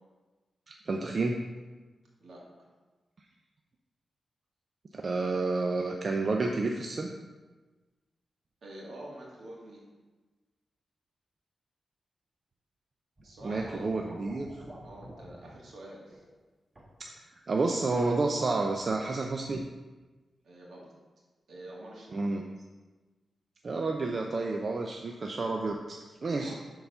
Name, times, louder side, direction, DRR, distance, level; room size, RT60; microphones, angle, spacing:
voice 1, 0.7-1.4 4.9-7.1 13.4-14.5 17.0-17.1 17.5-19.6 22.1-22.4 23.6-26.5, right 3 dB, 50° right, 2 dB, 0.5 m, -30 dB
voice 2, 8.6-9.9 13.2-13.9 14.8-16.2 20.4-20.9 21.5-22.2 26.3-26.5, right 1 dB, 80° right, -4 dB, 2.1 m, -47 dB
sound 1, 13.2-15.6 16.1-16.4 16.8-17.0 18.4-19.0 19.2-19.4, equal, 30° right, 1.5 m, -49 dB
7.0 x 3.9 x 5.5 m, 1.3 s
cardioid pair, 80°, 0 cm